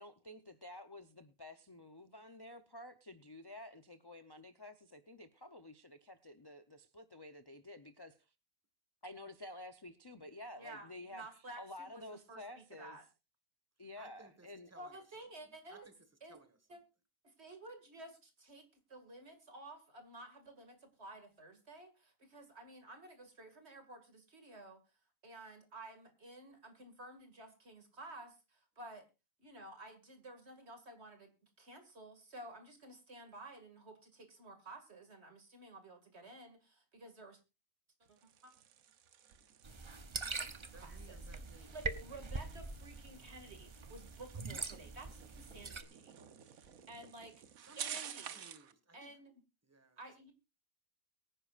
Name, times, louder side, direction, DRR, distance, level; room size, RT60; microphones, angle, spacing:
voice 1, 0.0-8.2 9.0-11.3 11.6-13.0 13.8-14.7, left 1 dB, 25° left, 0.5 m, -51 dB
voice 2, 10.6-13.1 14.7-15.9 16.2-16.4 16.7-16.8 17.2-24.8 25.2-29.1 29.4-37.4 38.1-38.5 40.8-41.2 41.7-46.1 46.5-47.4 47.8-48.5 48.9-49.4 50.0-50.3, right 2 dB, 45° right, 2.5 m, -53 dB
voice 3, 14.0-16.0 16.3-16.6 40.7-41.8 47.7-48.0 48.3-49.1 49.6-50.0, right 2 dB, 10° right, 1.6 m, -61 dB
sound 1, 38.0-48.7, right 9 dB, 75° right, 1.3 m, -52 dB
sound 2, 39.6-45.8, right 3 dB, 30° right, 0.6 m, -43 dB
23.0 x 10.0 x 2.5 m
omnidirectional pair, 1.5 m